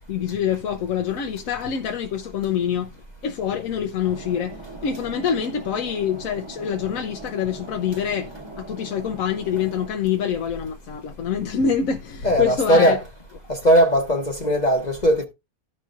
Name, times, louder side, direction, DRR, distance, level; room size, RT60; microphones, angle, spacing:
voice 1, 0.1-2.9 3.2-8.3 8.6-13.0, left 8 dB, 70° left, 1.1 m, -25 dB
sound 1, 4.0-9.9, right 3 dB, 20° right, 1.3 m, -40 dB
voice 2, 12.2-13.0 13.5-15.2, equal, 35° left, 1.0 m, -18 dB
15.0 x 5.5 x 2.5 m
omnidirectional pair, 1.5 m